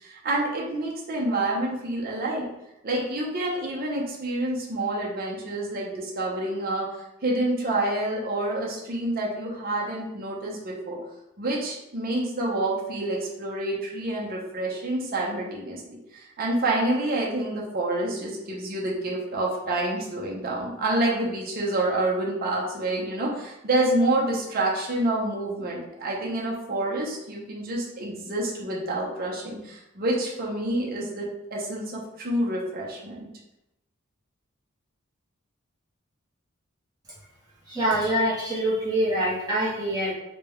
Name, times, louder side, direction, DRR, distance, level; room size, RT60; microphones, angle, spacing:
voice 1, 0.0-2.5 2.8-11.0 11.4-33.3, right 1 dB, 45° right, -3 dB, 0.8 m, -28 dB
voice 2, 37.7-40.1, right 1 dB, 20° right, -9 dB, 1.0 m, -25 dB
3.9 x 2.3 x 3.4 m, 0.90 s
head